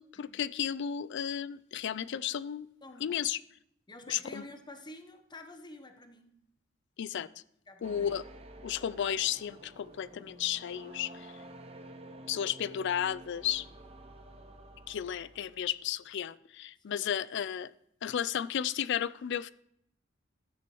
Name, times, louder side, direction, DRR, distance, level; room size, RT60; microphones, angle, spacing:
voice 1, 0.0-2.7 3.0-3.4 4.1-4.4 7.0-7.3 7.8-8.2 8.6-11.3 12.3-13.7 14.9-17.7 18.0-19.5, left 9 dB, 60° left, 18 dB, 0.4 m, -33 dB
voice 2, 2.8-3.3 3.9-6.3 7.2-7.3 7.7-8.2 16.9-17.1, left 2 dB, 20° left, 6 dB, 0.9 m, -49 dB
sound 1, 7.8-15.7, right 1 dB, 30° right, 0.8 m, -50 dB
13.0 x 9.3 x 3.1 m, 0.73 s
head